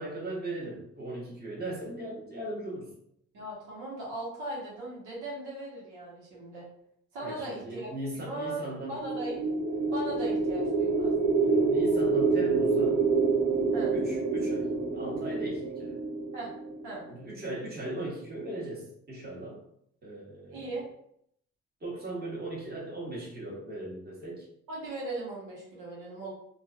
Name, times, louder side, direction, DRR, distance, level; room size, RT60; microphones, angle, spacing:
voice 1, 0.0-2.9 7.2-9.0 11.5-13.0 13.9-16.0 17.1-19.6 20.0-20.7 21.8-24.5, right 1 dB, 30° right, -4 dB, 1.3 m, -38 dB
voice 2, 3.3-6.7 7.1-7.9 8.1-8.6 8.9-9.4 9.9-11.1 13.7-14.0 16.3-16.5 16.8-17.0 20.5-20.8 24.7-26.3, right 2 dB, 90° right, -6 dB, 1.1 m, -38 dB
sound 1, 8.9-17.0, right 4 dB, 65° right, 0.8 m, -27 dB
3.1 x 2.5 x 2.4 m, 0.72 s
cardioid pair, 90°, 30 cm